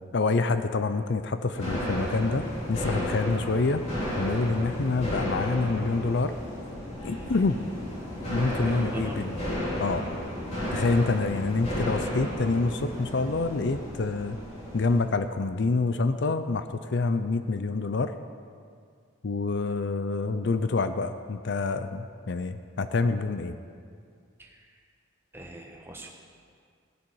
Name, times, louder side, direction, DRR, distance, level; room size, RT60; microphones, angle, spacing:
voice 1, 0.0-3.8 4.2-6.4 7.0-7.6 8.3-9.4 9.8-10.1 10.7-14.4 14.7-16.7 16.9-18.2 19.2-23.6, left 3 dB, 60° left, 10 dB, 0.5 m, -27 dB
sound 1, 1.5-15.0, equal, 30° left, 3.3 m, -33 dB
voice 2, 8.6-9.2 24.4-24.6 25.3-26.1, right 1 dB, 10° right, 1 dB, 1.3 m, -40 dB
17.0 x 11.0 x 4.7 m, 2.2 s
head